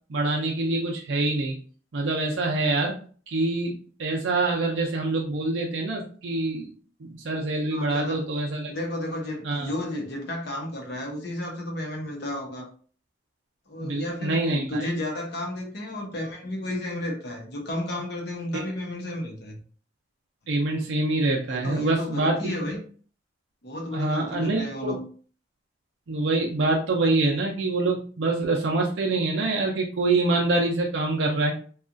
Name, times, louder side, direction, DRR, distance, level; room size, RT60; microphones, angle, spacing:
voice 1, 0.1-1.5 1.9-3.0 3.3-6.7 7.0-8.7 9.4-9.7 13.8-14.9 18.5-18.6 20.5-22.5 23.9-25.0 26.1-31.5, right 2 dB, 75° right, -1 dB, 0.5 m, -25 dB
voice 2, 7.7-8.2 8.7-12.7 13.7-19.6 21.5-22.8 23.6-25.0, left 1 dB, 60° left, 1 dB, 0.8 m, -32 dB
2.8 x 2.3 x 2.5 m, 0.42 s
head